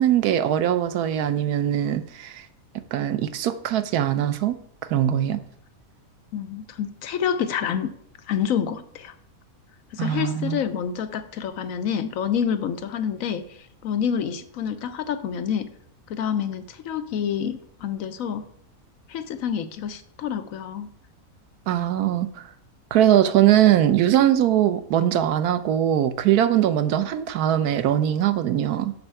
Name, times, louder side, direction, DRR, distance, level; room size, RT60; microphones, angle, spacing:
voice 1, 0.0-2.5 2.9-4.5 4.9-5.4 10.0-10.6 21.7-22.4 22.9-28.9, right 11 dB, 85° right, 11 dB, 1.2 m, -21 dB
voice 2, 6.3-7.9 8.3-9.1 9.9-13.4 13.8-15.7 16.1-18.4 19.1-20.9, left 8 dB, 70° left, 10 dB, 1.0 m, -27 dB
6.6 x 5.4 x 6.9 m, 0.69 s
omnidirectional pair, 1.6 m